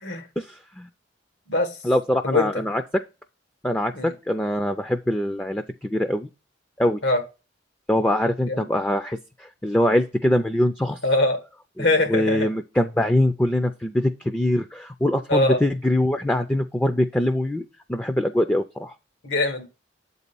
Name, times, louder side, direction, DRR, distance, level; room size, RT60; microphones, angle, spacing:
voice 1, 0.4-0.9 1.8-3.0 3.6-6.3 6.8-7.0 7.9-11.0 11.8-18.9, left 1 dB, 10° left, 0.4 m, -23 dB
voice 2, 11.0-11.4 11.8-12.5 15.3-15.6 19.2-19.7, left 2 dB, 85° left, 1.6 m, -22 dB
7.8 x 4.1 x 6.8 m
head